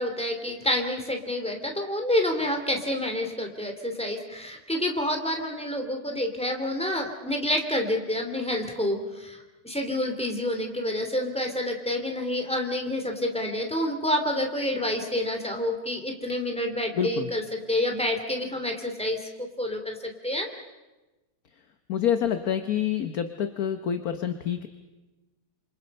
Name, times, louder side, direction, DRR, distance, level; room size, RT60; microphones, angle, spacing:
voice 1, 0.0-17.4 17.7-20.5, left 1 dB, 5° left, 4 dB, 2.9 m, -28 dB
voice 2, 16.9-17.3 21.5-21.6 21.9-24.7, left 9 dB, 50° left, 9 dB, 1.3 m, -27 dB
29.0 x 27.0 x 5.5 m, 1.1 s
omnidirectional pair, 2.3 m